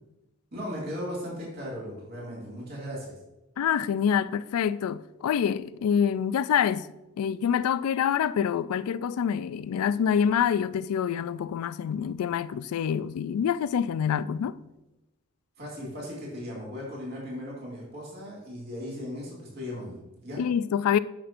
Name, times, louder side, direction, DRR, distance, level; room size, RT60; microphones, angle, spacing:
voice 1, 0.5-3.2 15.6-20.4, equal, 45° right, 2.2 m, -37 dB
voice 2, 3.6-6.9 7.2-14.5 20.4-21.0, left 8 dB, 85° left, 0.3 m, -26 dB
11.0 x 5.7 x 2.5 m
head